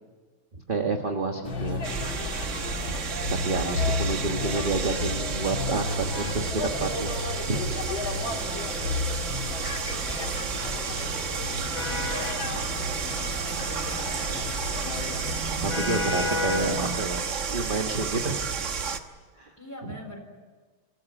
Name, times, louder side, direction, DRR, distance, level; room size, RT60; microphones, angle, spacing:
voice 1, 0.7-1.8 2.9-3.0 3.4-7.6 15.6-17.2 17.5-18.4 19.4-19.5 19.8-19.9, right 3 dB, 25° right, 3 dB, 1.4 m, -29 dB
sound 1, 1.4-17.0, left 3 dB, 65° left, 3.8 m, -32 dB
sound 2, 1.8-19.0, right 5 dB, 45° right, 1.2 m, -32 dB
voice 2, 10.2-10.8 11.4-15.4 19.6-20.2, equal, 10° left, 3 dB, 3.9 m, -45 dB
26.0 x 16.0 x 9.3 m, 1.4 s
omnidirectional pair, 2.4 m